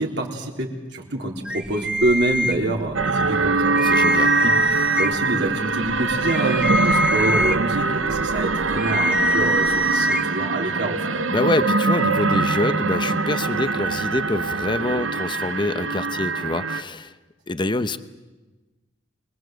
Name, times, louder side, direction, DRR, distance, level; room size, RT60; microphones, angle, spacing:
voice 1, 0.0-11.3, right 2 dB, 65° right, 0 dB, 4.1 m, -26 dB
sound 1, 1.5-3.0 3.4-3.5 3.8-5.3 5.8-10.2, equal, 5° right, 1.4 m, -24 dB
sound 2, 2.9-16.8, right 3 dB, 80° right, 1.1 m, -23 dB
voice 2, 3.8-4.3 11.3-17.1 17.5-18.0, left 2 dB, 25° left, 11 dB, 0.9 m, -25 dB
25.5 x 21.5 x 7.9 m, 1.2 s
head